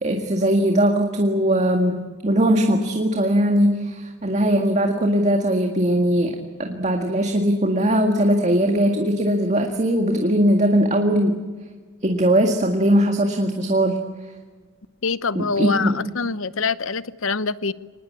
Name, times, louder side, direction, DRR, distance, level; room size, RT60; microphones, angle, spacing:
voice 1, 0.0-11.4 12.0-14.0 15.4-16.0, right 1 dB, 35° right, 3 dB, 1.9 m, -20 dB
voice 2, 15.0-17.7, left 4 dB, 65° left, 16 dB, 0.8 m, -25 dB
25.5 x 19.5 x 8.5 m, 1.4 s
head